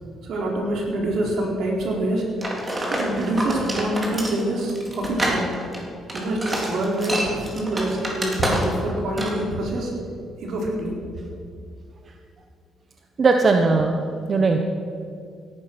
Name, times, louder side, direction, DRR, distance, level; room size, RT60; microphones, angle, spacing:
voice 1, 0.2-2.2 2.9-5.5 6.1-9.9 10.4-10.9, right 1 dB, 70° right, -1 dB, 4.3 m, -25 dB
sound 1, 2.4-8.9 9.2-9.4, right 1 dB, 25° right, 3.9 m, -27 dB
voice 2, 13.2-14.0 14.3-14.6, right 4 dB, 45° right, 4 dB, 1.3 m, -18 dB
17.0 x 12.0 x 6.1 m, 2.4 s
cardioid pair, 90°, 0 cm